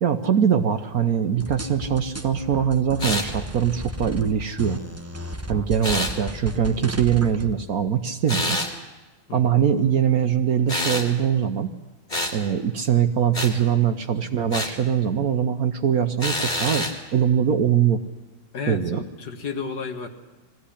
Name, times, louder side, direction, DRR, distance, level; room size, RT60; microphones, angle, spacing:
voice 1, 0.0-4.8 5.5-8.6 9.3-11.7 12.3-16.8 17.1-18.0 18.7-19.0, right 8 dB, 60° right, 8 dB, 1.2 m, -22 dB
sound 1, 1.4-7.5, equal, 10° right, 0.7 m, -34 dB
sound 2, 3.0-3.3 5.8-6.1 8.3-8.7 10.7-11.1 12.1-12.4 13.3-13.5 14.5-14.8 16.2-17.0, left 1 dB, 25° left, 2.5 m, -26 dB
voice 2, 18.5-20.1, left 5 dB, 60° left, 6 dB, 2.1 m, -32 dB
21.5 x 15.5 x 10.0 m, 1.2 s
omnidirectional pair, 2.1 m